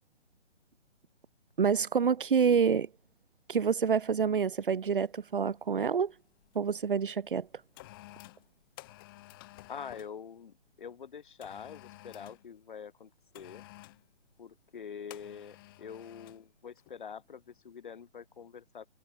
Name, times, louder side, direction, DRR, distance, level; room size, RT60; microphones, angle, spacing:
voice 1, 1.6-2.9 3.5-6.1 6.5-7.5, right 6 dB, 45° right, 3.0 m, -27 dB
sound 1, 4.0-4.2 4.8-5.1 5.4-6.6 7.2-10.2 11.4-12.5 13.3-14.1 15.1-16.5 16.8-17.0, left 19 dB, 20° left, 5.8 m, -52 dB
voice 2, 9.7-13.6 14.4-18.9, left 7 dB, 45° left, 7.9 m, -45 dB
hypercardioid pair, 170°, 36 cm